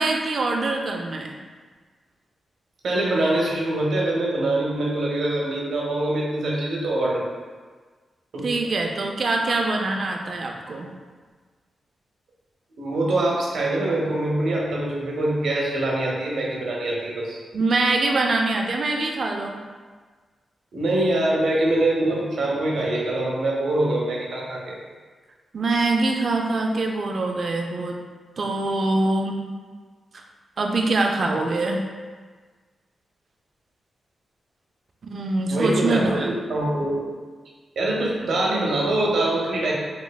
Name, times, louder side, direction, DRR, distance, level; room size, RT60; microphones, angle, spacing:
voice 1, 0.0-1.4 8.4-10.9 17.5-19.6 25.5-28.0 28.4-29.4 30.1-30.2 30.6-31.8 35.0-36.3, right 2 dB, 45° right, 2 dB, 0.3 m, -24 dB
voice 2, 2.8-7.2 8.3-8.5 12.8-17.4 20.7-24.8 35.5-37.1 37.8-39.7, right 1 dB, 70° right, -3 dB, 0.7 m, -24 dB
3.5 x 3.2 x 2.2 m, 1.5 s
wide cardioid pair, 170°, 0 cm